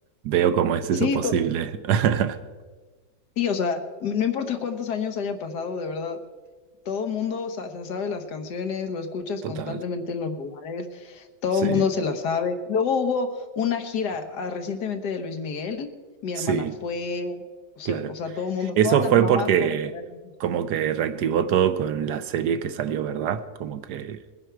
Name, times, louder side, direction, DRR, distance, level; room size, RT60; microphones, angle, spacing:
voice 1, 0.2-2.4 9.4-9.8 11.6-11.8 16.4-16.7 17.8-18.1 18.8-19.9 20.4-24.2, right 9 dB, 70° right, 11 dB, 1.1 m, -23 dB
voice 2, 0.9-1.3 3.4-6.2 6.9-15.9 16.2-17.4 17.8-20.3, left 5 dB, 70° left, 7 dB, 1.6 m, -28 dB
21.0 x 9.8 x 4.6 m, 1.4 s
omnidirectional pair, 1.9 m